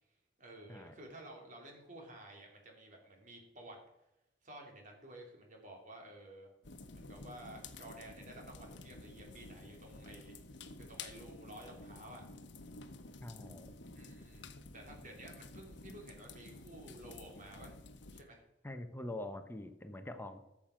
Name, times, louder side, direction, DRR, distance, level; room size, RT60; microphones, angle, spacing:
voice 1, 0.4-3.8 4.4-6.5 6.9-10.3 10.8-12.2 13.9-17.8 18.1-18.4, right 1 dB, 45° right, 1 dB, 3.0 m, -53 dB
sound 1, 6.6-18.2, left 3 dB, 75° left, 1.0 m, -51 dB
voice 2, 13.2-13.7 18.6-20.4, left 1 dB, 10° left, 7 dB, 0.8 m, -44 dB
13.5 x 7.5 x 5.0 m, 0.91 s
head